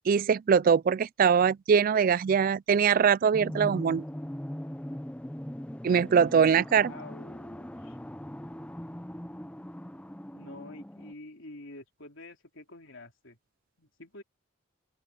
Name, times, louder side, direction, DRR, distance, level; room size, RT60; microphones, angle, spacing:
voice 1, 0.1-4.0 5.8-6.9, right 7 dB, 45° right, 0.3 m, -22 dB
sound 1, 3.3-11.1, equal, 5° left, 0.6 m, -40 dB
voice 2, 6.8-8.0 10.3-13.4 13.8-14.2, left 2 dB, 65° left, 3.8 m, -48 dB
open air
head